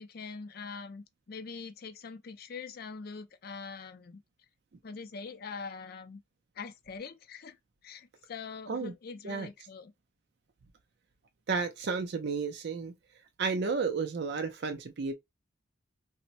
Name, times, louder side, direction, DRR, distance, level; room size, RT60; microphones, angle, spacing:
voice 1, 0.0-4.2 4.8-6.2 6.6-7.6 7.8-9.9, left 5 dB, 50° left, 0.4 m, -43 dB
voice 2, 11.5-12.9 13.4-15.1, right 4 dB, 60° right, 0.5 m, -32 dB
4.2 x 2.1 x 2.5 m
head